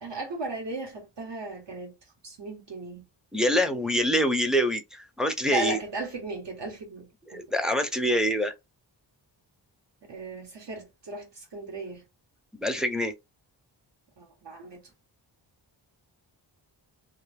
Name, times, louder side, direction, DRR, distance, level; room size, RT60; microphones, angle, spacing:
voice 1, 0.0-1.9 2.2-3.0 5.5-7.4 10.1-12.0 14.2-14.8, right 2 dB, 70° right, 1.1 m, -36 dB
voice 2, 3.3-5.8 7.3-8.5 12.6-13.1, equal, ahead, 0.4 m, -25 dB
2.6 x 2.3 x 3.3 m
wide cardioid pair, 125°, 45 cm